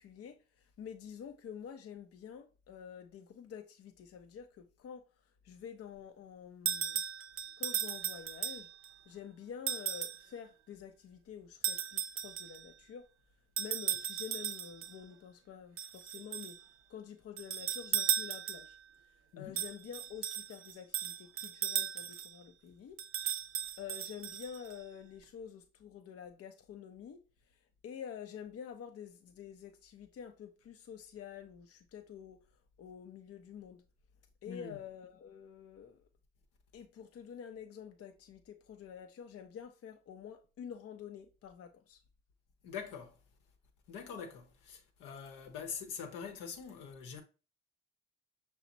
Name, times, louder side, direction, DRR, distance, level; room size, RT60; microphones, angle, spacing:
voice 1, 0.0-5.0 5.4-7.0 7.6-8.7 9.1-13.0 13.6-16.6 16.9-18.8 19.4-23.0 23.8-27.2 27.8-32.4 32.8-33.8 34.4-36.1 36.7-42.0, left 8 dB, 50° left, 0.7 m, -48 dB
sound 1, 6.7-8.9 9.7-10.3 11.6-12.6 13.6-14.9 15.8-16.6 17.4-18.8 19.6-22.3 23.0-24.7, right 9 dB, 45° right, 0.5 m, -36 dB
voice 2, 34.5-34.8 42.6-43.2 43.9-47.2, left 6 dB, 75° left, 0.9 m, -44 dB
5.8 x 2.1 x 4.0 m
hypercardioid pair, 45°, 32 cm